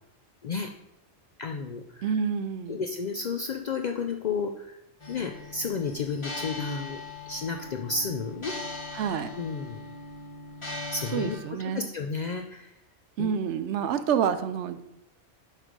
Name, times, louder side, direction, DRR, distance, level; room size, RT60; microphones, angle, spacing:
voice 1, 1.4-2.1 2.7-4.8 5.1-7.0 7.3-8.5 9.4-9.8 10.9-12.7 13.2-13.4, left 4 dB, 60° left, 4 dB, 0.4 m, -32 dB
voice 2, 2.0-2.8 8.9-9.3 11.1-11.9 13.2-14.8, right 7 dB, 80° right, 11 dB, 0.9 m, -28 dB
sound 1, 5.0-11.4, left 2 dB, 25° left, 1.2 m, -40 dB
7.5 x 3.2 x 5.2 m, 0.81 s
omnidirectional pair, 1.2 m